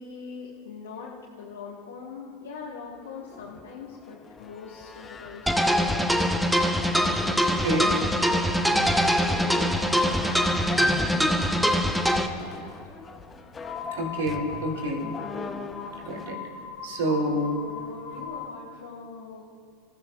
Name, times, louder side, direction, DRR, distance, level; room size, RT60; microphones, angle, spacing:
voice 1, 0.0-6.1 7.0-10.8 11.5-12.7 16.9-19.4, left 5 dB, 75° left, -6 dB, 1.7 m, -42 dB
sound 1, 2.8-16.3, left 4 dB, 25° left, 0.9 m, -41 dB
sound 2, 5.5-12.3, equal, ahead, 1.1 m, -23 dB
voice 2, 7.6-7.9 13.9-15.0 16.0-16.4 16.8-17.6, right 1 dB, 70° right, 1 dB, 3.1 m, -27 dB
sound 3, 13.6-18.6, left 7 dB, 45° left, 2.1 m, -39 dB
27.5 x 15.5 x 2.5 m, 2.2 s
figure-of-eight pair, 85°, 0 cm